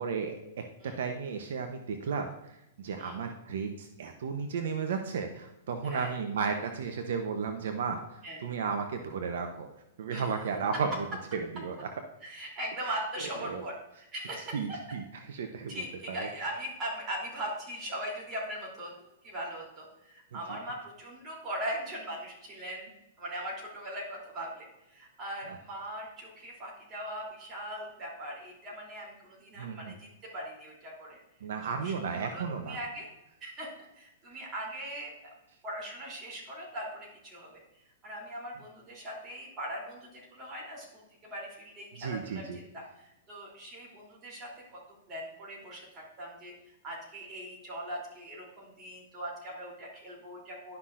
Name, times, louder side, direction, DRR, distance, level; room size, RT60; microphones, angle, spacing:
voice 1, 0.0-0.6 1.0-9.7 10.0-11.0 11.3-11.9 12.8-12.9 13.4-13.6 14.5-15.0 15.3-16.3 20.3-20.4 29.6-29.9 31.4-32.8 42.0-42.6, right 5 dB, 75° right, 6 dB, 0.8 m, -34 dB
voice 2, 5.8-6.1 8.2-8.4 10.1-10.3 12.2-14.8 15.7-22.9 23.2-30.1 30.3-31.2 31.8-33.1 33.4-33.7 33.9-35.1 35.6-44.8 45.1-50.8, right 1 dB, 25° right, -4 dB, 3.1 m, -40 dB
11.5 x 5.7 x 2.5 m, 0.89 s
hypercardioid pair, 150°, 0 cm